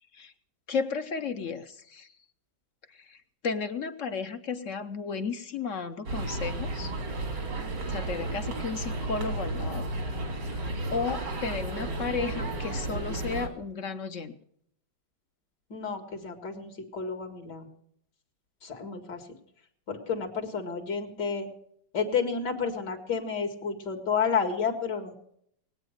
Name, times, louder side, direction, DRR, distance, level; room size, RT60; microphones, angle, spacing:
voice 1, 0.7-2.1 3.1-3.2 3.4-6.9 7.9-9.8 10.5-14.3, left 5 dB, 55° left, 9 dB, 1.0 m, -33 dB
sound 1, 6.1-13.5, right 2 dB, 85° right, 3.1 m, -33 dB
voice 2, 15.7-17.7 18.6-19.2 19.9-21.5 21.9-25.1, left 6 dB, 70° left, 4 dB, 2.6 m, -31 dB
20.0 x 8.9 x 6.5 m, 0.68 s
omnidirectional pair, 1.9 m